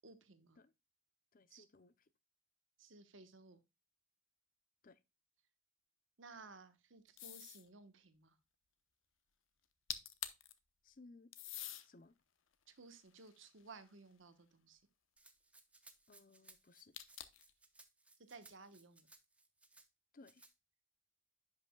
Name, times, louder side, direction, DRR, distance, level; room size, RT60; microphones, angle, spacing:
voice 1, 0.0-0.6 1.5-1.6 2.8-3.6 6.2-8.4 12.7-14.8 18.3-19.1, right 4 dB, 65° right, 1.1 m, -57 dB
voice 2, 1.3-1.9 4.8-5.0 10.8-11.3 11.8-12.2 16.1-16.9 20.1-20.4, left 3 dB, 45° left, 0.6 m, -61 dB
sound 1, 7.2-7.7 9.6-9.7 9.9-10.5 11.3-11.9 12.5-14.0 16.9-17.5, left 12 dB, 70° left, 0.8 m, -47 dB
Rattle (instrument), 15.2-19.9 20.2-20.5, right 2 dB, 5° right, 0.6 m, -64 dB
10.5 x 5.8 x 2.2 m
head